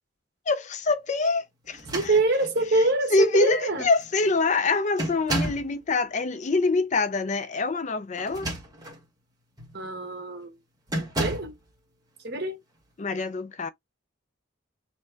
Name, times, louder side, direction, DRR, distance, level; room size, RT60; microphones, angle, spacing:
voice 1, 0.5-2.2 2.7-8.5 13.0-13.7, left 3 dB, 35° left, 0.4 m, -25 dB
sound 1, 1.7-2.6 3.5-3.6 4.0-4.3 5.0-5.7 8.2-9.0 9.6-9.8 10.9-11.6, right 1 dB, 20° right, 1.5 m, -32 dB
voice 2, 1.9-3.9 9.7-10.5 11.2-11.5 12.2-12.6, right 2 dB, 55° right, 1.5 m, -25 dB
4.4 x 2.2 x 4.5 m
head